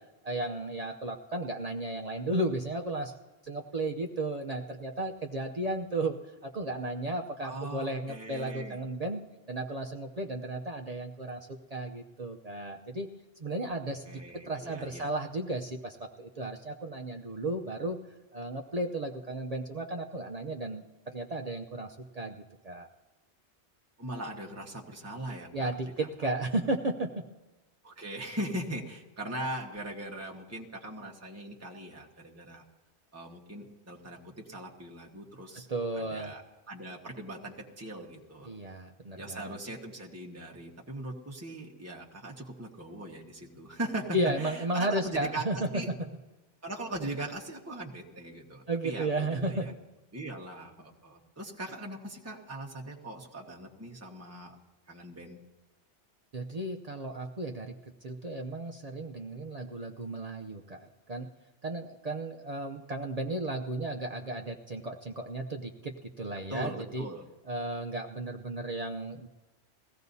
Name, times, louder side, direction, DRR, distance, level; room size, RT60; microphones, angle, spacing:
voice 1, 0.2-3.1 3.4-6.2 6.4-9.2 9.5-13.1 13.4-14.2 14.5-18.0 18.3-22.9 25.5-27.3 35.7-36.3 38.4-39.6 44.1-46.1 48.7-49.7 56.3-61.3 61.6-67.1 67.5-69.3, right 2 dB, 40° right, 2 dB, 0.7 m, -34 dB
voice 2, 7.4-8.8 14.0-15.1 24.0-25.7 26.0-26.3 27.8-32.6 33.1-35.7 35.9-38.5 39.2-45.9 46.6-49.7 50.1-54.5 54.9-55.4 66.5-67.2, right 1 dB, 15° right, -1 dB, 1.4 m, -40 dB
21.5 x 16.5 x 2.7 m, 1.1 s
omnidirectional pair, 1.2 m